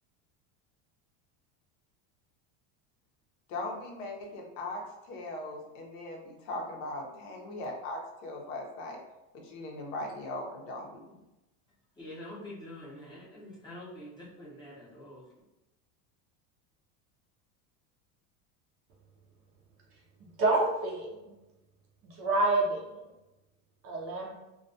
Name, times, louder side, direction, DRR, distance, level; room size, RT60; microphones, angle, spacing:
voice 1, 3.5-9.0 9.3-11.2, left 2 dB, 65° left, 1 dB, 0.7 m, -39 dB
voice 2, 12.0-15.2, left 1 dB, 10° left, -7 dB, 0.6 m, -46 dB
voice 3, 20.4-21.2 22.2-22.8 23.8-24.3, right 2 dB, 35° right, -2 dB, 0.4 m, -27 dB
2.3 x 2.2 x 2.6 m, 0.96 s
cardioid pair, 150°, 41 cm